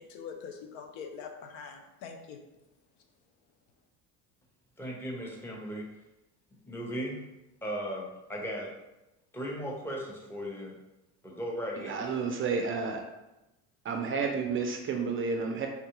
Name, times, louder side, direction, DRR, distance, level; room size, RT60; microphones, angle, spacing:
voice 1, 0.0-2.4, left 6 dB, 85° left, 5 dB, 0.6 m, -43 dB
voice 2, 4.8-5.9 6.6-7.2 7.6-8.7 9.3-10.8 11.2-12.0, equal, 5° left, -2 dB, 0.7 m, -37 dB
voice 3, 11.8-13.0 13.8-15.7, right 5 dB, 35° right, 3 dB, 0.4 m, -31 dB
3.6 x 2.3 x 2.9 m, 0.97 s
supercardioid pair, 95°, 39 cm